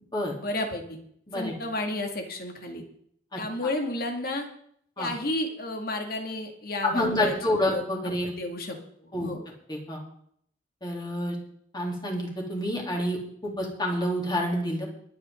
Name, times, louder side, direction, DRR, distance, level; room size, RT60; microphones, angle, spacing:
voice 1, 0.4-1.0 1.3-2.8 3.3-4.5 5.0-7.8 8.2-9.5, left 1 dB, 55° left, 3 dB, 2.5 m, -32 dB
voice 2, 6.8-8.3 9.1-9.3 9.7-10.0 10.8-11.4 11.7-14.8, left 1 dB, 25° left, -1 dB, 3.5 m, -28 dB
23.0 x 8.7 x 3.9 m, 0.65 s
head